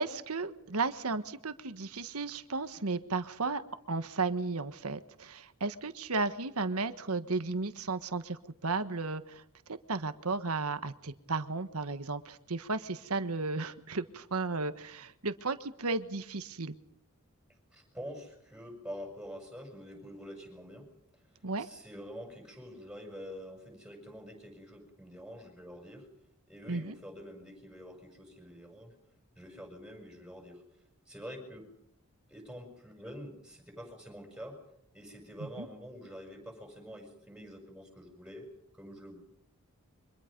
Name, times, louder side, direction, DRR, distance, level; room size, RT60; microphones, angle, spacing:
voice 1, 0.0-3.6 3.9-9.4 9.9-16.8 21.4-21.7 26.7-27.0 35.4-35.7, right 3 dB, 85° right, 10 dB, 1.4 m, -34 dB
voice 2, 17.7-26.1 26.5-28.9 29.4-30.6 31.1-31.7 32.3-34.6 34.9-38.5 38.7-39.2, equal, 5° right, 3 dB, 7.1 m, -47 dB
29.5 x 25.0 x 5.3 m, 0.71 s
head